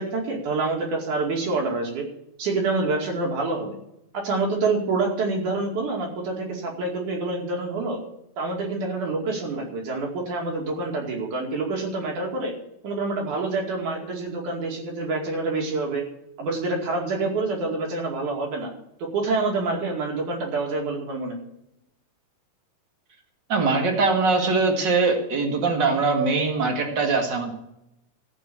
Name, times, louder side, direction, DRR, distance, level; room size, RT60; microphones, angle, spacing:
voice 1, 0.0-2.1 2.4-3.8 4.1-8.0 8.4-12.5 12.8-16.0 16.4-18.7 19.0-21.4, right 3 dB, 60° right, 0 dB, 3.8 m, -27 dB
voice 2, 23.5-27.5, right 4 dB, 40° right, 3 dB, 2.1 m, -22 dB
14.5 x 5.5 x 8.6 m, 0.81 s
omnidirectional pair, 4.0 m